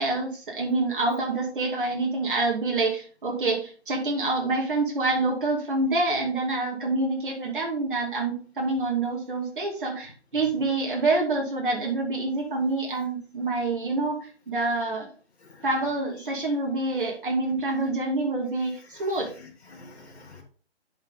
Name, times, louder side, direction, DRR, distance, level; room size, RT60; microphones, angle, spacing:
voice 1, 0.0-15.1 15.6-19.3, right 2 dB, 50° right, -2 dB, 2.5 m, -27 dB
voice 2, 19.4-20.4, left 3 dB, 65° left, -2 dB, 2.5 m, -48 dB
8.0 x 5.4 x 3.7 m, 0.40 s
hypercardioid pair, 165°, 34 cm